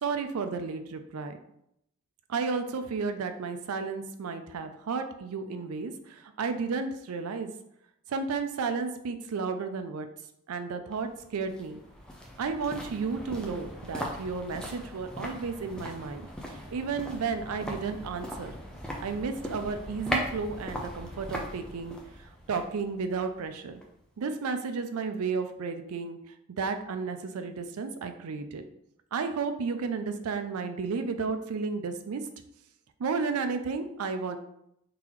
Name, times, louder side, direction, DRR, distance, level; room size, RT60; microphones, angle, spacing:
voice 1, 0.0-1.4 2.3-7.5 8.1-10.1 10.5-11.8 12.4-16.2 16.5-18.5 19.0-22.0 22.5-23.8 24.2-26.2 26.6-28.6 29.1-32.3 33.0-34.4, right 4 dB, 80° right, 8 dB, 0.4 m, -32 dB
sound 1, 10.9-24.1 24.4-24.5, equal, 5° left, 0.4 m, -39 dB
3.8 x 2.8 x 3.0 m, 0.77 s
head